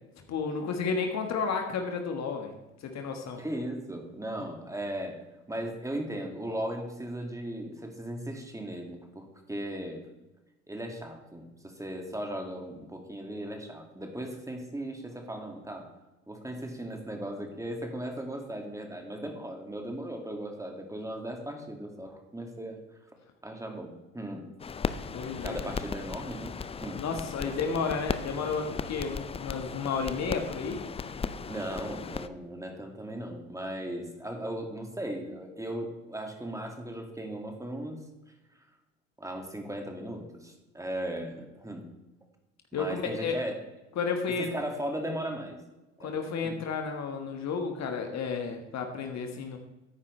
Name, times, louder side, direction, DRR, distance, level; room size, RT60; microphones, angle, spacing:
voice 1, 0.3-2.5 2.8-3.4 25.1-25.7 26.9-30.8 42.7-43.4 44.0-44.5 46.0-49.6, left 5 dB, 45° left, 4 dB, 1.6 m, -32 dB
voice 2, 3.4-5.2 5.5-10.0 10.7-15.9 16.3-22.8 23.4-24.5 25.4-27.0 27.4-27.5 31.5-38.0 39.2-41.9 42.7-43.6 44.4-45.6 46.0-46.2 46.4-46.6, right 1 dB, 10° right, 3 dB, 2.2 m, -37 dB
sound 1, 24.6-32.3, left 5 dB, 15° left, 0.5 m, -37 dB
13.5 x 9.8 x 3.3 m, 1.1 s
hypercardioid pair, 65°, 38 cm